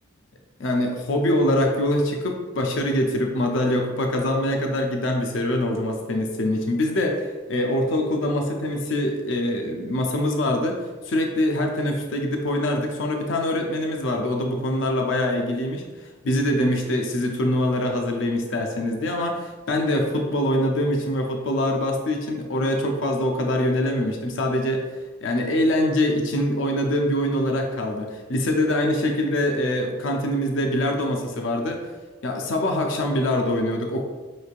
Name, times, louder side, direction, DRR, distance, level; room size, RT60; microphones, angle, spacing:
voice 1, 0.6-10.8 11.1-15.8 16.2-24.8 25.2-31.8 32.2-34.0, left 1 dB, 75° left, 3 dB, 0.5 m, -24 dB
5.1 x 3.1 x 2.4 m, 1.3 s
head